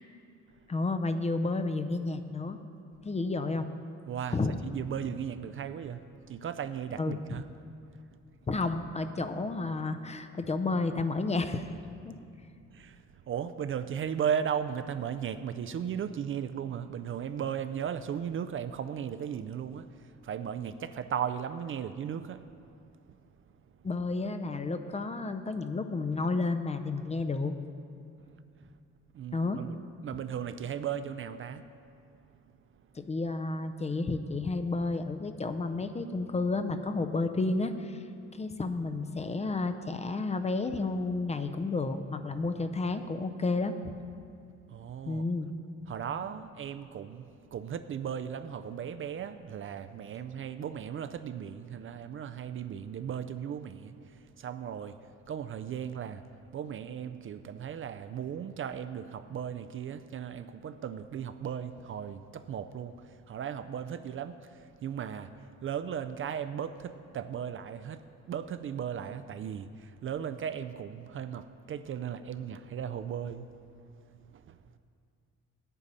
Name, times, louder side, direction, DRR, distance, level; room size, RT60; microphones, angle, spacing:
voice 1, 0.7-2.6 3.0-3.7 4.3-4.6 7.0-7.2 8.5-11.7 12.0-12.2 23.8-27.5 29.3-29.6 32.9-38.0 38.3-43.9 45.1-45.5, left 3 dB, 20° left, 8 dB, 0.5 m, -31 dB
voice 2, 4.1-4.4 4.6-7.4 12.7-22.5 29.1-29.8 30.0-31.6 44.7-45.2 45.9-56.3 56.5-73.5 74.3-74.6, right 8 dB, 45° right, 11 dB, 0.4 m, -36 dB
9.0 x 8.3 x 5.4 m, 2.4 s
cardioid pair, 90°, 30 cm